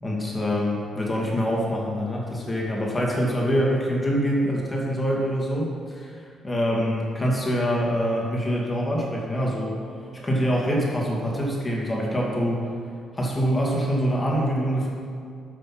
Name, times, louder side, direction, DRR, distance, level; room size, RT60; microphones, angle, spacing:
voice 1, 0.0-6.1 6.4-9.7 10.1-12.6 13.1-14.9, equal, 20° left, -3 dB, 2.1 m, -25 dB
7.9 x 6.7 x 6.0 m, 2.3 s
cardioid pair, 90°, 0 cm